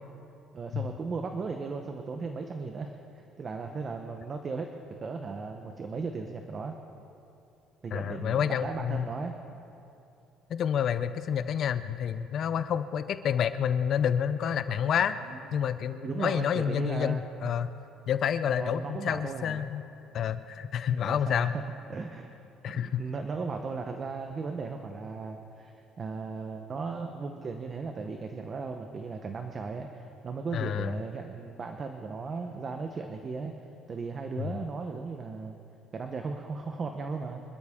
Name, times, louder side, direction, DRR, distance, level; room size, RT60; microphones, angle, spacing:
voice 1, 0.5-4.7 5.0-6.7 7.8-9.4 15.2-15.4 16.0-17.2 18.6-19.7 21.0-21.6 21.9-22.3 22.7-35.6 35.9-37.4, right 4 dB, 25° right, 5 dB, 0.8 m, -36 dB
voice 2, 7.9-9.1 10.5-15.2 15.5-17.7 18.1-19.8 20.1-21.5 22.6-23.0 30.5-30.9 34.4-34.5, left 8 dB, 45° left, 12 dB, 0.5 m, -29 dB
26.0 x 12.5 x 3.6 m, 2.7 s
cardioid pair, 160°, 0 cm